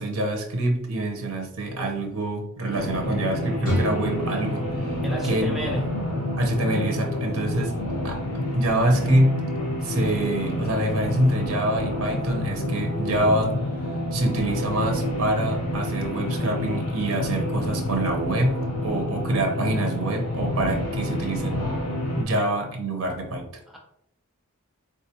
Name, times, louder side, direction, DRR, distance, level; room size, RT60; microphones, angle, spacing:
voice 1, 0.0-4.7 5.2-5.6 6.4-7.8 8.0-8.2 8.5-9.4 9.8-13.6 14.1-21.6 22.2-23.5, right 1 dB, 65° right, 3 dB, 0.7 m, -25 dB
sound 1, 2.7-22.2, left 1 dB, 90° left, 0.8 m, -28 dB
sound 2, 3.6-7.4, right 1 dB, 40° left, 1.4 m, -33 dB
voice 2, 5.0-5.9 22.4-22.5 23.7-23.8, equal, ahead, -1 dB, 0.4 m, -30 dB
3.6 x 2.3 x 2.8 m, 0.75 s
head